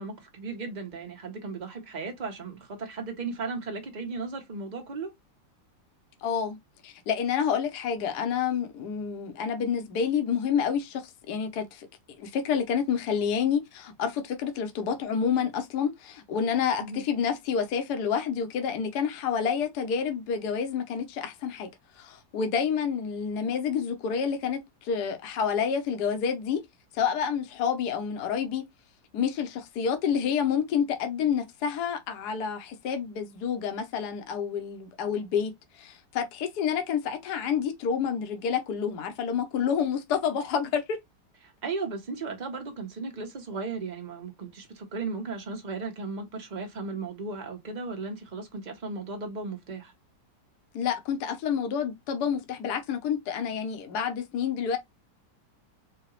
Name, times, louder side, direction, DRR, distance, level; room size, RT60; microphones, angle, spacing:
voice 1, 0.0-5.1 16.8-17.0 41.4-49.9, right 4 dB, 30° right, 0.9 m, -36 dB
voice 2, 6.2-6.6 6.8-11.9 12.2-21.7 22.0-26.6 26.9-28.7 29.1-35.5 35.8-41.0 50.7-54.8, left 7 dB, 65° left, 1.4 m, -28 dB
4.8 x 2.4 x 3.1 m
omnidirectional pair, 2.0 m